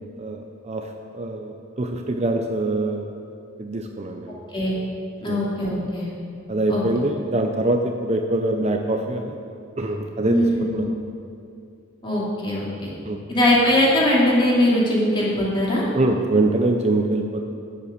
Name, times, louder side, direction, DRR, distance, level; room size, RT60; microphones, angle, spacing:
voice 1, 0.0-3.1 3.6-4.4 5.2-5.4 6.5-9.4 9.8-10.9 13.1-13.2 15.9-17.4, right 2 dB, 30° right, 3 dB, 0.6 m, -24 dB
voice 2, 5.2-6.1 6.7-6.8 10.2-10.9 12.0-12.9 13.3-15.9, left 1 dB, 25° left, -6 dB, 2.6 m, -20 dB
9.7 x 7.8 x 6.6 m, 2.4 s
head